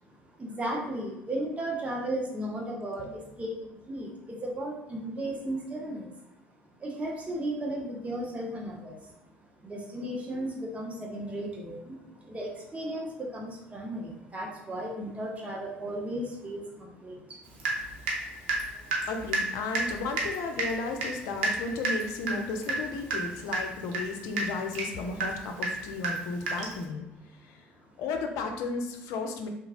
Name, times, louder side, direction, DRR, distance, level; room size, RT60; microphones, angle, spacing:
voice 1, 0.4-6.1 6.8-9.1 9.6-17.6, right 1 dB, 20° right, -2 dB, 0.6 m, -35 dB
Water tap faucet / Drip, 17.6-18.2 18.5-26.8, right 2 dB, 75° right, 0.6 m, -31 dB
voice 2, 19.1-27.0 27.4-27.6 28.0-29.5, left 3 dB, 60° left, 3 dB, 0.4 m, -34 dB
2.8 x 2.3 x 2.8 m, 0.91 s
figure-of-eight pair, 60°, 6 cm